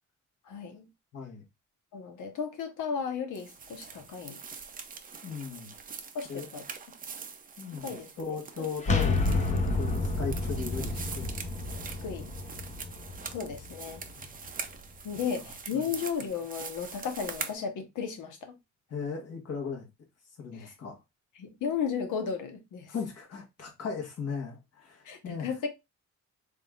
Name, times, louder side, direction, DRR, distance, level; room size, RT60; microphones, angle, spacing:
voice 1, 0.4-0.9 1.9-4.4 6.1-6.6 7.8-8.1 8.6-8.7 12.0-12.3 13.3-14.0 15.0-18.6 20.5-20.7 21.4-22.9 25.0-25.7, left 6 dB, 85° left, 1.0 m, -34 dB
voice 2, 1.1-1.4 5.2-5.7 6.3-6.5 7.6-11.5 14.2-14.3 15.7-15.9 18.9-19.9 20.4-21.0 22.9-25.5, left 5 dB, 55° left, 1.4 m, -37 dB
sound 1, 3.3-17.5, right 5 dB, 30° right, 0.5 m, -43 dB
sound 2, 8.8-14.5, left 3 dB, 25° left, 0.7 m, -30 dB
3.6 x 3.6 x 2.4 m
cardioid pair, 135°, 30 cm